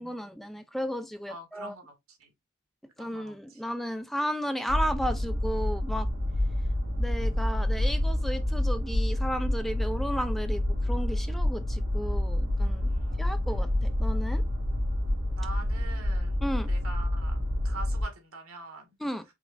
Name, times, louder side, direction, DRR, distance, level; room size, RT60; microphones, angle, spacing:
voice 1, 0.0-1.8 3.0-6.1 7.0-12.9 13.2-14.4 16.4-16.7 19.0-19.2, equal, ahead, 0.3 m, -34 dB
voice 2, 1.3-1.9 2.2-2.3 3.0-3.6 12.6-13.3 15.4-18.9, right 3 dB, 85° right, 1.6 m, -44 dB
sound 1, 4.7-18.0, left 1 dB, 55° right, 1.9 m, -28 dB
4.9 x 3.4 x 2.4 m
head